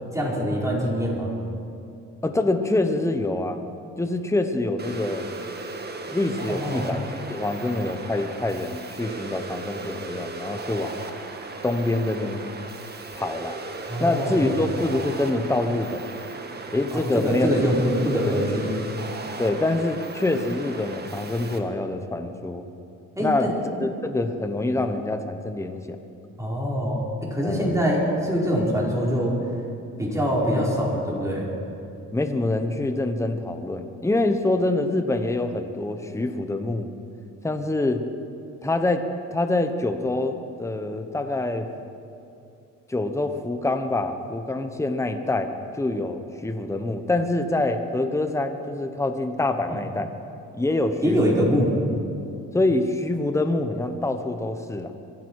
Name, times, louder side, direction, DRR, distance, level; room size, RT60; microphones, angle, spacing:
voice 1, 0.1-1.3 6.5-6.9 13.9-14.5 16.9-18.8 23.2-23.6 26.4-29.4 30.0-31.5 49.6-49.8 51.0-51.8, equal, 10° right, -4 dB, 4.8 m, -24 dB
voice 2, 2.2-3.6 4.0-5.3 6.1-7.0 7.3-11.0 11.6-12.4 13.1-13.6 14.0-16.0 16.7-17.5 18.2-18.7 19.4-22.7 23.2-23.5 23.8-26.0 27.4-27.7 32.1-36.9 37.4-38.1 38.6-39.0 39.3-41.7 42.9-50.1 50.5-51.5 52.5-54.9, left 2 dB, 10° left, 7 dB, 1.1 m, -25 dB
sound 1, 4.8-21.6, right 3 dB, 35° right, 1.5 m, -36 dB
24.5 x 12.0 x 4.8 m, 2.5 s
cardioid pair, 90°, 30 cm